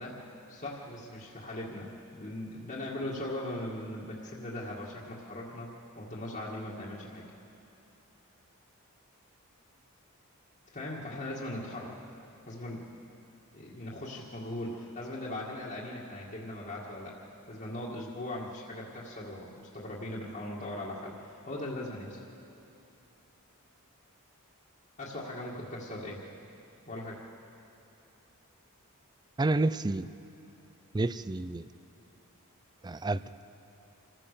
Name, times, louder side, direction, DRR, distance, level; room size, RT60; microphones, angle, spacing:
voice 1, 0.0-5.7 5.9-7.2 10.7-12.0 12.5-13.0 13.5-17.2 17.5-22.2 25.0-26.2 26.9-27.2, left 1 dB, 40° left, -6 dB, 2.0 m, -39 dB
voice 2, 29.4-30.1 30.9-31.7 32.8-33.2, right 2 dB, 20° right, 15 dB, 0.4 m, -29 dB
26.5 x 15.5 x 6.8 m, 2.9 s
head